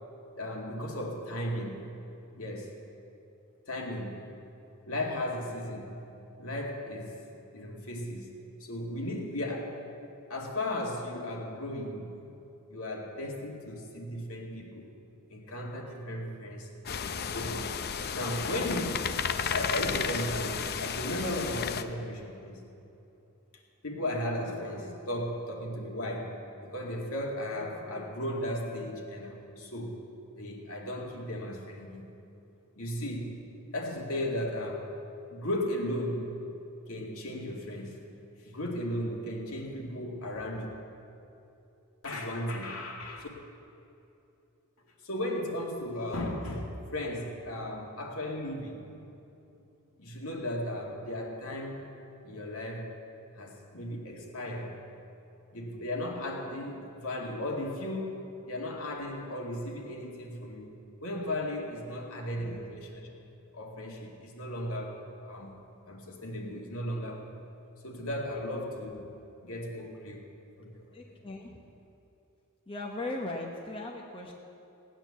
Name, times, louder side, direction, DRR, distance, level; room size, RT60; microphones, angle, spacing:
voice 1, 0.4-1.9 2.3-2.8 3.7-4.3 4.9-6.1 6.4-7.2 7.5-8.3 8.6-9.9 10.3-12.2 12.7-14.9 15.3-16.7 17.1-17.8 18.1-22.6 23.5-30.1 30.4-32.1 32.8-33.4 33.7-34.9 35.3-36.3 36.9-38.1 38.4-40.7 42.0-43.3 45.0-48.8 50.0-51.9 52.2-53.0 53.4-54.8 55.5-63.1 63.5-67.4 67.8-69.1 69.4-70.3 70.6-71.0, left 1 dB, 70° left, 0 dB, 2.2 m, -36 dB
sound 1, 16.9-21.8, left 7 dB, 45° left, 0.6 m, -33 dB
voice 2, 62.3-62.7 70.9-71.8 72.7-74.3, left 2 dB, 25° left, 0 dB, 1.0 m, -38 dB
18.0 x 9.3 x 7.2 m, 2.8 s
head